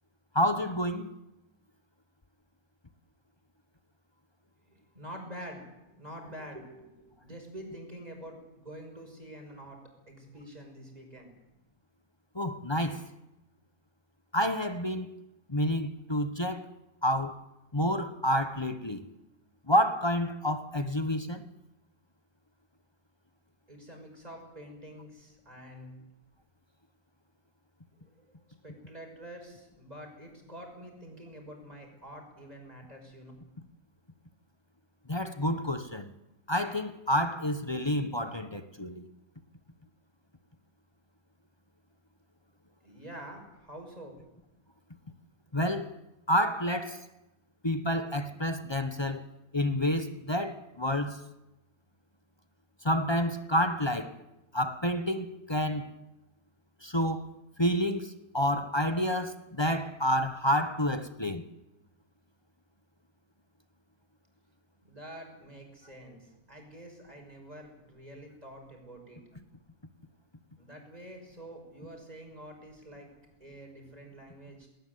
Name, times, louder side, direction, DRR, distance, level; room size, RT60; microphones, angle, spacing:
voice 1, 0.3-1.1 12.3-13.0 14.3-15.1 15.5-16.7 17.0-17.4 17.7-19.0 19.7-21.5 35.1-36.1 36.5-39.0 45.5-46.0 46.3-47.1 47.6-49.2 49.5-51.2 52.8-54.2 54.5-55.9 56.8-57.3 57.6-61.4, equal, 20° left, 0.9 m, -29 dB
voice 2, 4.7-5.6 5.9-9.8 10.1-11.3 23.7-25.9 28.3-33.3 42.8-44.1 64.8-69.2 70.6-73.1 73.4-74.7, right 1 dB, 20° right, 6.1 m, -47 dB
19.5 x 18.5 x 9.5 m
omnidirectional pair, 1.8 m